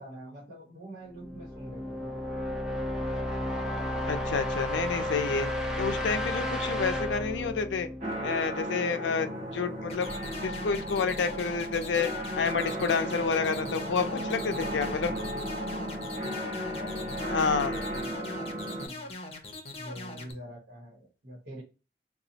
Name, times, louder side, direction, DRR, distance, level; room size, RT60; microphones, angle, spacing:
voice 1, 0.0-2.2 14.0-16.4 16.7-19.2 19.8-21.6, equal, 75° right, 1.2 m, -45 dB
sound 1, 1.1-8.9, left 1 dB, 5° right, 0.5 m, -33 dB
voice 2, 4.1-5.5 5.8-7.9 8.2-10.1 10.4-15.1 17.3-17.7, left 5 dB, 85° left, 0.4 m, -29 dB
sound 2, 8.0-18.9, equal, 45° right, 1.2 m, -35 dB
sound 3, 9.9-20.3, left 2 dB, 35° left, 0.6 m, -41 dB
4.0 x 2.3 x 2.8 m
head